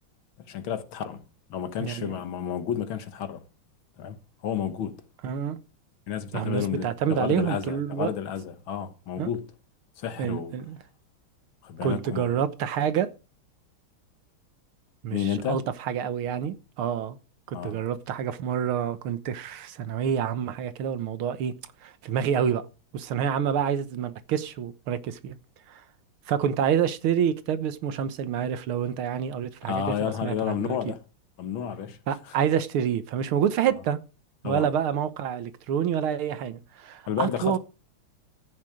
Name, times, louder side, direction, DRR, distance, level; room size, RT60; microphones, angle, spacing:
voice 1, 0.5-1.2 1.5-3.4 4.0-4.2 4.4-5.0 6.1-9.5 10.0-10.5 11.6-12.3 15.1-15.6 17.5-17.8 29.6-31.0 31.4-32.4 34.4-34.7 37.1-37.6, left 9 dB, 75° left, 2.0 m, -31 dB
voice 2, 1.8-2.1 5.2-5.6 6.3-8.1 9.2-9.3 10.2-10.8 11.8-13.1 15.0-17.2 17.5-21.5 21.8-22.6 22.9-25.4 25.7-25.8 26.3-30.8 32.1-34.0 34.4-37.6, right 8 dB, 85° right, 1.9 m, -27 dB
14.5 x 6.6 x 5.0 m
omnidirectional pair, 2.3 m